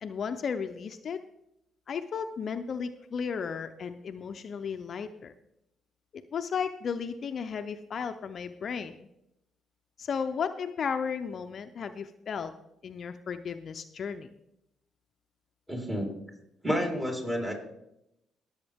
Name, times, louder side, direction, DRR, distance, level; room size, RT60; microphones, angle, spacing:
voice 1, 0.0-1.2 1.9-5.3 6.1-9.1 10.0-12.5 12.8-14.3, left 6 dB, 55° left, 8 dB, 0.6 m, -34 dB
voice 2, 15.7-16.1 16.6-17.5, equal, 15° right, -1 dB, 4.3 m, -29 dB
19.0 x 7.9 x 3.5 m, 0.83 s
cardioid pair, 90°, 0 cm